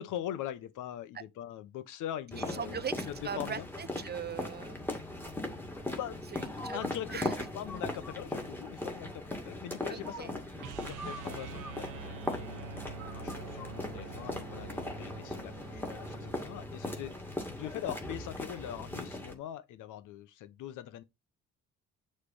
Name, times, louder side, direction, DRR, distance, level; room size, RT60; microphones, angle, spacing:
voice 1, 0.0-3.7 6.0-6.2 6.7-10.4 10.8-17.2 17.5-21.0, left 11 dB, 85° left, 0.9 m, -42 dB
sound 1, 2.3-19.3, left 1 dB, 5° left, 2.0 m, -39 dB
voice 2, 2.3-4.8 6.3-6.8 7.1-7.4 9.9-10.3, right 7 dB, 35° right, 0.6 m, -40 dB
sound 2, 10.6-16.7, right 6 dB, 90° right, 0.8 m, -46 dB
6.6 x 3.3 x 5.6 m
cardioid pair, 90°, 30 cm